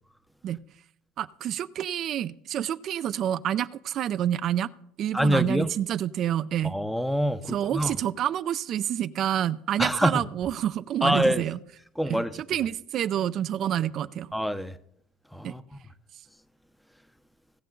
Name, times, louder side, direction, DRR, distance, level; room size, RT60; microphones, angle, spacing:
voice 1, 1.2-4.7 5.0-6.7 7.5-11.6 12.1-14.3 15.4-15.5, right 10 dB, 45° right, 0.4 m, -28 dB
voice 2, 5.1-5.7 6.6-7.9 9.8-10.2 11.0-11.4 12.0-12.4 14.3-14.7 15.3-15.6, equal, ahead, 0.7 m, -25 dB
17.5 x 6.7 x 3.9 m
cardioid pair, 125°, 0 cm